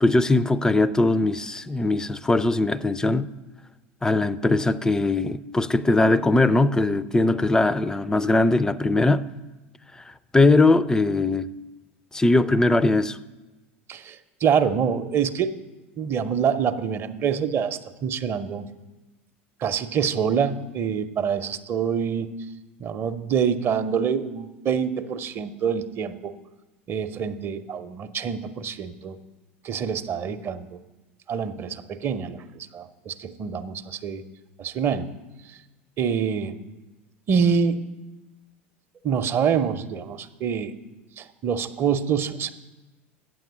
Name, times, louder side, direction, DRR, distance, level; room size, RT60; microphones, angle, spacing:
voice 1, 0.0-3.3 4.0-9.3 10.3-11.5 12.1-13.2, left 2 dB, 10° left, 0.4 m, -20 dB
voice 2, 13.9-15.5 16.0-18.7 19.6-22.3 22.8-26.3 26.9-29.2 29.6-30.8 31.3-34.2 34.6-35.1 36.0-36.6 37.3-37.8 39.0-40.7 41.2-42.5, right 7 dB, 35° right, 0.6 m, -26 dB
9.1 x 7.7 x 6.9 m
figure-of-eight pair, 75°, 7 cm